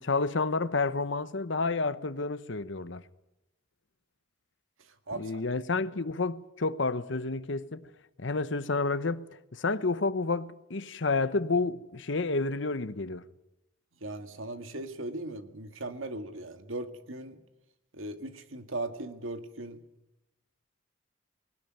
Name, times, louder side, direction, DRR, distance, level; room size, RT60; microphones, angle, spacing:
voice 1, 0.0-3.0 5.2-7.9 8.2-13.2, left 3 dB, 70° left, 0.9 m, -30 dB
voice 2, 5.1-5.4 14.0-17.4 17.9-19.8, right 2 dB, 90° right, 1.9 m, -38 dB
20.5 x 18.5 x 9.1 m
head